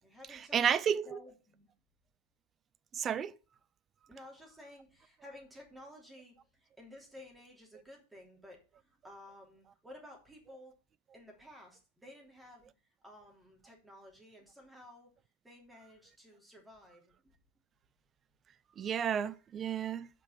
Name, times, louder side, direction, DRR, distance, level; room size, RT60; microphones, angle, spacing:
voice 1, 0.0-0.6 0.8-1.7 4.1-10.8 11.1-12.7 13.0-15.1 15.4-17.3, left 1 dB, 5° right, 3.3 m, -54 dB
voice 2, 0.5-1.2 2.9-3.3 18.8-20.1, right 8 dB, 25° right, 0.4 m, -31 dB
8.3 x 5.5 x 7.1 m
figure-of-eight pair, 90°, 0 cm